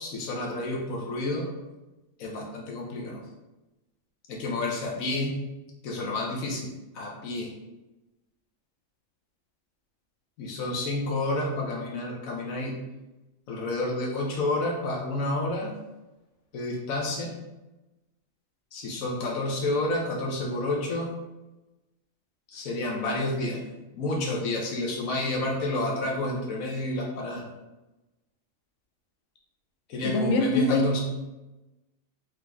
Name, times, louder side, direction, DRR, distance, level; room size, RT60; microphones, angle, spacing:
voice 1, 0.0-1.5 2.2-3.2 4.3-5.4 5.8-7.5 10.4-12.8 13.5-15.7 16.5-17.4 18.7-21.1 22.5-23.6 23.9-27.4 29.9-31.0, left 2 dB, 90° left, -1 dB, 1.2 m, -30 dB
voice 2, 30.0-30.8, left 2 dB, 70° left, 4 dB, 0.8 m, -24 dB
3.8 x 3.2 x 3.4 m, 1.0 s
omnidirectional pair, 1.4 m